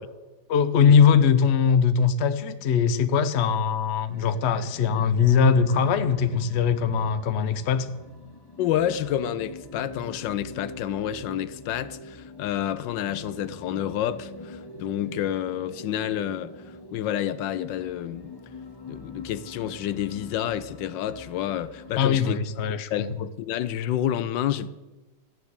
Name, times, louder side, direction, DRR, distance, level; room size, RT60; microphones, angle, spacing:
voice 1, 0.5-7.9 22.0-23.1, left 6 dB, 50° left, 0.8 m, -21 dB
sound 1, 4.1-22.7, left 2 dB, 20° left, 0.8 m, -43 dB
voice 2, 8.6-18.3 18.9-22.4 22.9-24.7, left 11 dB, 75° left, 1.3 m, -29 dB
14.0 x 10.5 x 8.1 m
omnidirectional pair, 2.0 m